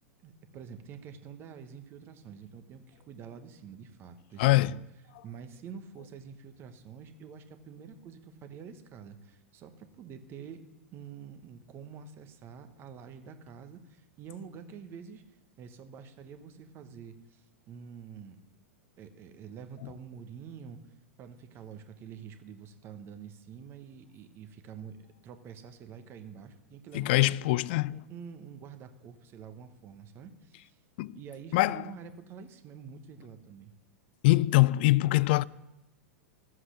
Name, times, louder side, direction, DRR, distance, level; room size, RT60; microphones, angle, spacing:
voice 1, 0.2-4.8 5.2-10.6 10.9-18.4 19.0-25.0 25.2-27.4 27.9-30.8 31.1-33.7, right 7 dB, 30° right, 1.2 m, -47 dB
voice 2, 4.4-4.8 26.9-28.0 31.0-31.2 31.5-31.8 34.2-35.4, left 19 dB, 45° left, 0.4 m, -23 dB
13.0 x 7.9 x 6.3 m
figure-of-eight pair, 95°, 8 cm